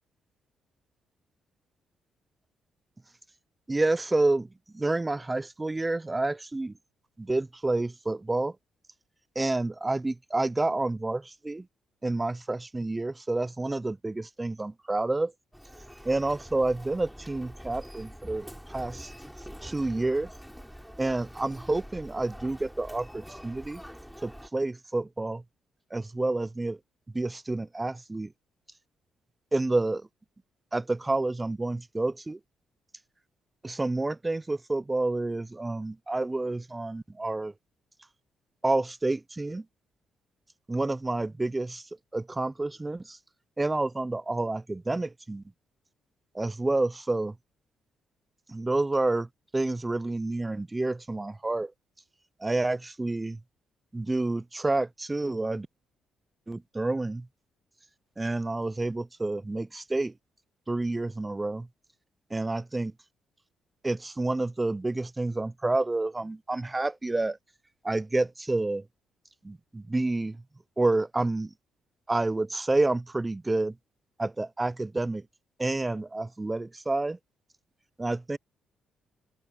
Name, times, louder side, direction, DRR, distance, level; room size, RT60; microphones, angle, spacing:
voice 1, 3.7-4.5 4.7-6.7 7.2-8.6 9.4-11.7 12.0-15.3 16.0-19.1 19.6-20.3 21.0-23.8 24.2-25.4 25.9-26.8 27.1-28.3 29.5-30.1 30.7-32.4 33.6-37.5 38.6-39.7 40.7-43.2 43.6-45.4 46.3-47.4 48.5-49.3 49.5-51.7 52.4-53.4 53.9-55.7 56.5-57.3 58.2-60.1 60.7-61.7 62.3-62.9 63.8-67.4 67.8-68.9 69.4-70.4 70.8-71.5 72.1-73.8 74.2-75.2 75.6-77.2 78.0-78.4, right 2 dB, 15° right, 0.4 m, -29 dB
Human voice, 15.5-24.5, equal, ahead, 4.6 m, -45 dB
cardioid pair, 90°, 0 cm